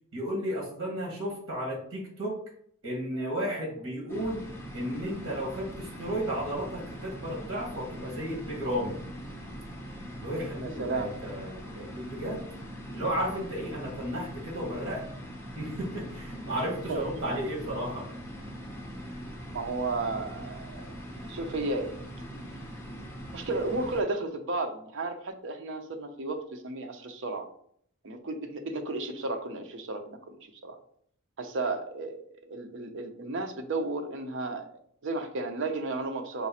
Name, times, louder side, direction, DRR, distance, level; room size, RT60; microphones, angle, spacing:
voice 1, 0.1-2.4 2.8-4.5 4.7-9.0 10.2-12.4 12.9-15.1 15.5-18.1, equal, 75° right, -1 dB, 1.4 m, -33 dB
sound 1, 4.1-24.0, equal, 10° left, 0.9 m, -42 dB
voice 2, 10.6-11.1 16.9-17.0 19.5-22.0 23.3-27.5 28.0-30.4 30.6-30.8 31.4-34.7 35.0-36.5, right 2 dB, 60° right, 6 dB, 0.6 m, -33 dB
5.3 x 2.4 x 4.1 m, 0.65 s
head